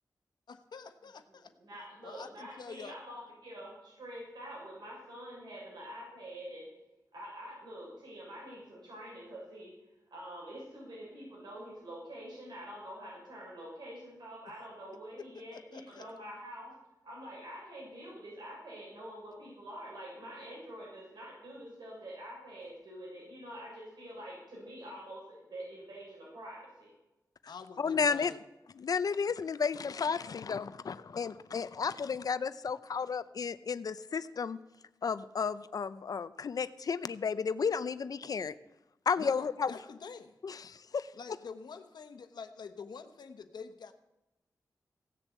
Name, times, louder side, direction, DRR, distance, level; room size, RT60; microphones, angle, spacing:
voice 1, 0.5-1.5 2.0-2.9 15.2-16.1 27.5-28.4 39.2-40.3 41.1-43.9, left 5 dB, 90° left, 8 dB, 1.1 m, -47 dB
voice 2, 1.6-6.7 7.1-9.7 10.1-16.7 17.0-26.9, equal, 85° right, -5 dB, 6.3 m, -46 dB
voice 3, 27.8-28.3 28.8-34.6 35.0-38.6 39.1-39.7 40.4-41.1, left 6 dB, 60° left, 15 dB, 0.6 m, -33 dB
16.5 x 6.9 x 8.3 m, 0.96 s
wide cardioid pair, 135°, 7 cm